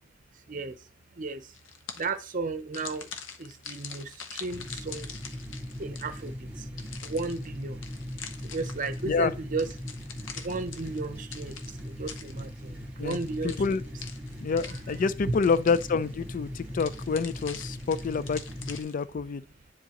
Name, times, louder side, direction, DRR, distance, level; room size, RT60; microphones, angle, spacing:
sound 1, 1.5-2.3 2.7-6.3 6.8-9.1 9.6-12.7 13.1-15.2 15.4-16.1 16.8-19.0, left 7 dB, 85° left, 0.8 m, -44 dB
voice 1, 2.0-3.1 3.4-5.1 5.8-6.5 7.0-7.8 8.4-9.7 10.4-11.6 11.8-13.6, right 3 dB, 45° right, 0.7 m, -34 dB
sound 2, 4.5-18.8, equal, 10° right, 2.0 m, -40 dB
voice 2, 13.4-13.8 14.4-19.4, left 5 dB, 45° left, 0.4 m, -27 dB
9.9 x 3.8 x 2.9 m
head